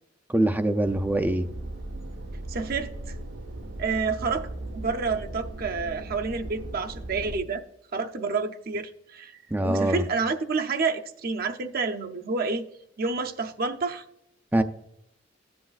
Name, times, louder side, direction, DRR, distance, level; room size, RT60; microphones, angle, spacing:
voice 1, 0.3-1.5 9.5-10.0 14.5-14.6, right 1 dB, 10° right, 0.4 m, -23 dB
sound 1, 0.8-7.4, right 1 dB, 70° right, 0.9 m, -38 dB
voice 2, 2.5-3.1 3.8-4.5 4.7-7.6 7.9-9.3 9.6-12.7 13.0-14.0, right 4 dB, 50° right, 0.6 m, -29 dB
14.0 x 7.8 x 2.4 m
head